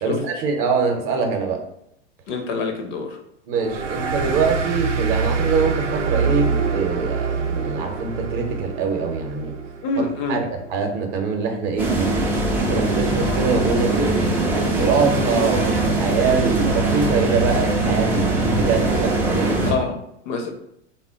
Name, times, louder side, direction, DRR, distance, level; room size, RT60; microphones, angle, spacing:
voice 1, 0.0-1.6 3.5-9.5 10.0-12.1 12.6-19.6, right 5 dB, 40° right, 3 dB, 0.7 m, -24 dB
voice 2, 2.3-3.1 9.8-10.4 19.6-20.0 20.3-20.5, left 4 dB, 40° left, 5 dB, 0.6 m, -25 dB
sound 1, 3.6-10.7, right 5 dB, 80° right, 0.5 m, -25 dB
sound 2, 11.8-19.7, right 2 dB, 5° right, 0.3 m, -21 dB
3.5 x 2.1 x 3.6 m, 0.75 s
figure-of-eight pair, 90°, 36 cm